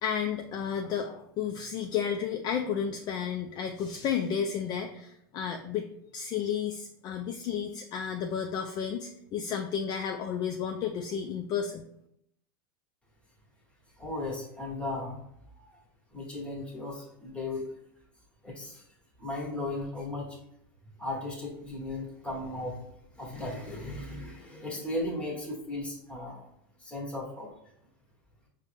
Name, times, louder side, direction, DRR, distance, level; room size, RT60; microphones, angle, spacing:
voice 1, 0.0-11.8, left 7 dB, 35° left, 4 dB, 0.3 m, -32 dB
voice 2, 14.0-15.2 15.5-15.8 16.1-17.7 18.4-18.8 19.2-20.4 21.0-22.8 23.1-26.4 26.8-27.5, left 2 dB, 10° left, -2 dB, 1.2 m, -36 dB
4.9 x 2.2 x 3.4 m, 0.75 s
hypercardioid pair, 115°, 12 cm